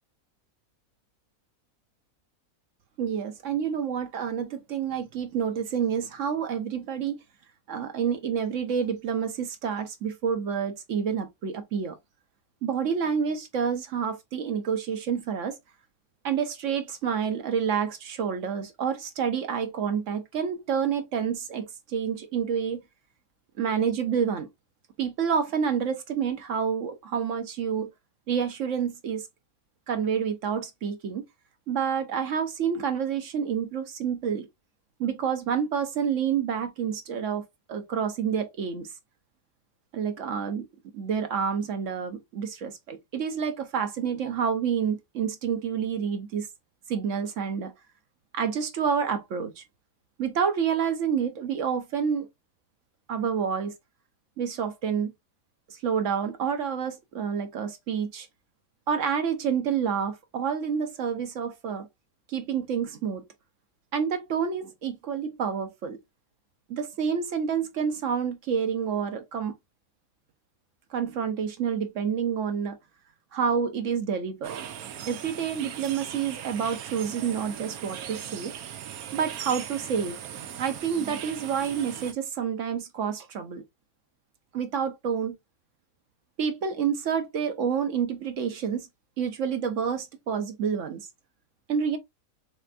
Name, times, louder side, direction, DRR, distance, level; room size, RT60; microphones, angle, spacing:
voice 1, 3.0-7.2 7.7-12.0 12.6-15.6 16.2-22.8 23.6-24.5 25.0-27.9 28.3-29.3 29.9-31.2 31.7-34.5 35.0-38.9 39.9-40.7 40.9-46.5 46.9-47.7 48.3-49.6 50.2-52.3 53.1-53.7 54.4-55.1 55.7-58.3 58.9-61.9 62.3-63.2 63.9-66.0 66.7-69.6 70.9-72.8 73.3-74.6 75.1-78.5 79.1-80.2 80.6-83.6 84.5-85.4 86.4-88.9 89.2-91.1 91.7-92.0, right 7 dB, 65° right, 1.0 m, -28 dB
sound 1, 74.4-82.1, right 9 dB, 85° right, 1.1 m, -39 dB
4.2 x 3.3 x 2.4 m
omnidirectional pair, 1.5 m